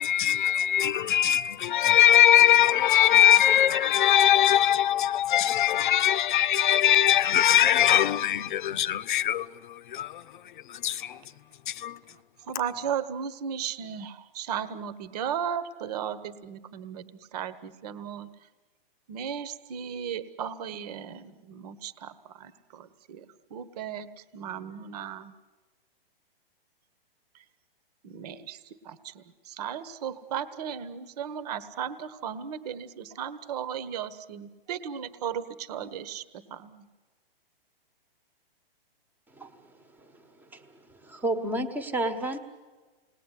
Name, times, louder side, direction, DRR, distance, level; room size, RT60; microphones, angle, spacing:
voice 1, 0.0-10.2 10.7-11.2 11.7-12.0, left 11 dB, 55° left, 0.9 m, -21 dB
voice 2, 12.4-17.0 17.3-18.3 19.1-23.2 23.5-24.1 24.3-25.3 28.0-28.6 28.8-36.9, right 8 dB, 40° right, 1.3 m, -35 dB
voice 3, 39.3-42.4, right 2 dB, 5° right, 1.4 m, -33 dB
29.5 x 20.0 x 10.0 m
hypercardioid pair, 160°, 30 cm